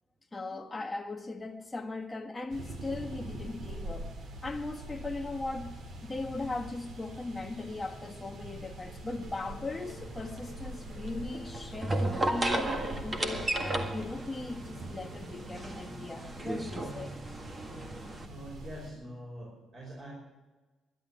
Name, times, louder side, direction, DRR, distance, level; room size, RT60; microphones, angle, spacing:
voice 1, 0.3-4.1 4.4-17.1, left 2 dB, 15° left, 1.5 m, -39 dB
sound 1, 2.5-18.9, right 1 dB, 60° right, 2.5 m, -44 dB
Dishes pots and pans, 8.8-15.4, right 2 dB, 85° right, 3.7 m, -55 dB
sound 2, 9.7-18.3, right 1 dB, 25° right, 1.8 m, -35 dB
voice 2, 18.2-20.1, right 1 dB, 45° right, 5.4 m, -44 dB
11.5 x 11.0 x 10.0 m
cardioid pair, 90°, 0 cm